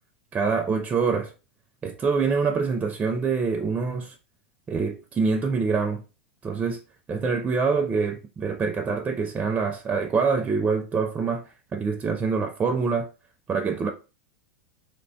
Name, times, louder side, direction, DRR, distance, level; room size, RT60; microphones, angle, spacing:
voice 1, 0.3-1.3 1.8-4.1 4.7-6.0 6.4-6.8 7.1-11.4 11.7-13.1 13.5-13.9, right 5 dB, 20° right, 0.4 m, -25 dB
3.0 x 2.1 x 2.7 m
hypercardioid pair, 115°, 7 cm